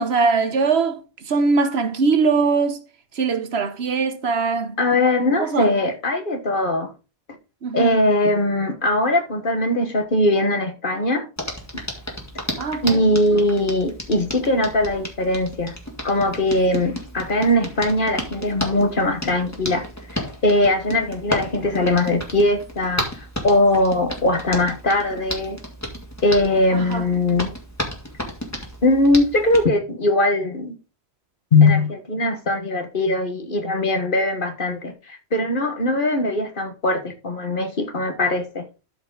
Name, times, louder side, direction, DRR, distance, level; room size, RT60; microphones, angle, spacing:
voice 1, 0.0-2.8 3.2-4.8 5.4-5.7 7.6-8.0 12.6-13.1 26.8-27.0, right 4 dB, 75° right, 1.2 m, -21 dB
voice 2, 4.8-6.9 7.7-11.3 12.8-15.7 16.0-19.8 20.1-25.6 26.2-27.5 28.8-30.7 31.5-38.6, left 1 dB, 55° left, 1.6 m, -20 dB
Hands, 11.4-29.6, left 1 dB, 15° left, 2.2 m, -33 dB
12.5 x 4.9 x 3.9 m
omnidirectional pair, 1.1 m